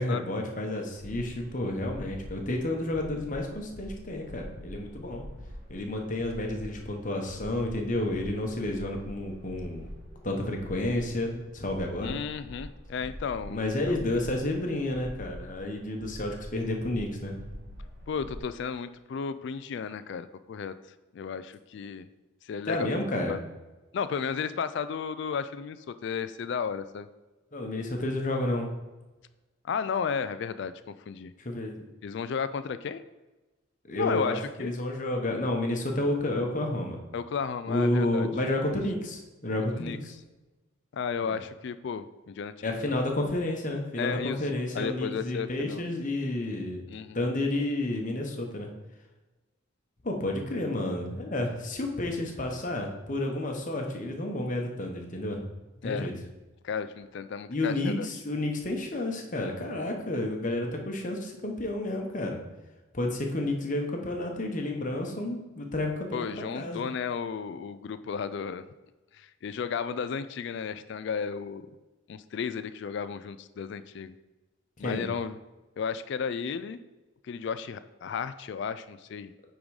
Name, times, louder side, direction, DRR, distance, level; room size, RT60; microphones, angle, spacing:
voice 1, 0.0-5.2 5.7-9.9 10.2-12.2 13.5-17.3 22.7-23.4 27.5-28.7 31.4-31.8 33.9-37.0 37.7-40.1 41.2-41.4 42.6-46.8 47.1-48.7 50.0-55.5 55.8-56.1 57.5-62.4 62.9-66.3 66.5-66.8 74.8-75.1, left 1 dB, 35° left, 2 dB, 1.0 m, -30 dB
sound 1, 0.9-18.4, equal, 50° right, 2.3 m, -45 dB
voice 2, 12.0-14.0 18.1-20.7 21.1-22.1 22.4-22.9 23.3-23.4 23.9-27.1 29.6-31.3 32.0-33.0 33.9-34.7 37.1-38.3 39.8-40.0 40.9-43.0 44.0-44.4 44.7-45.8 46.9-47.2 55.8-56.1 56.6-58.1 66.1-68.6 69.1-71.7 72.1-74.1 74.8-75.4 75.8-76.8 77.2-79.3, left 6 dB, 55° left, 13 dB, 0.3 m, -33 dB
8.8 x 3.7 x 4.8 m, 1.1 s
head